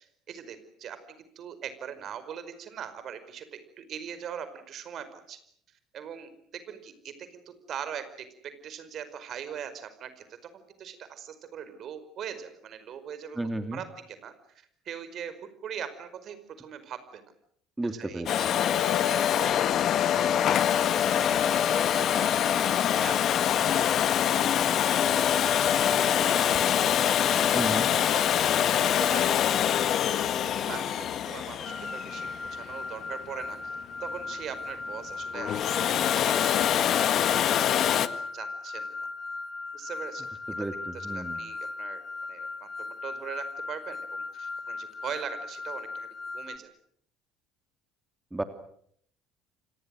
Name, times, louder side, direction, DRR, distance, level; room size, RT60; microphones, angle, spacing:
voice 1, 0.0-5.4 5.9-8.3 8.6-10.2 10.5-15.3 15.6-17.2 17.8-19.7 20.1-20.4 20.7-20.8 21.1-24.8 25.2-26.7 27.9-29.8 30.5-35.5 35.8-37.8 38.3-38.9 39.7-40.2 40.9-42.0 42.3-42.7 43.0-46.1 46.3-46.7, right 8 dB, 50° right, 11 dB, 5.0 m, -42 dB
voice 2, 13.3-13.8 17.8-18.3 27.5-27.9 40.5-41.4 48.3-48.4, right 1 dB, 10° right, 7 dB, 3.0 m, -33 dB
Domestic sounds home sounds, 18.3-33.0 35.3-38.1, left 10 dB, 50° left, 1.8 m, -24 dB
sound 1, 31.6-46.6, left 3 dB, 30° left, 3.2 m, -38 dB
30.0 x 26.0 x 6.5 m, 0.66 s
hypercardioid pair, 65°, 0 cm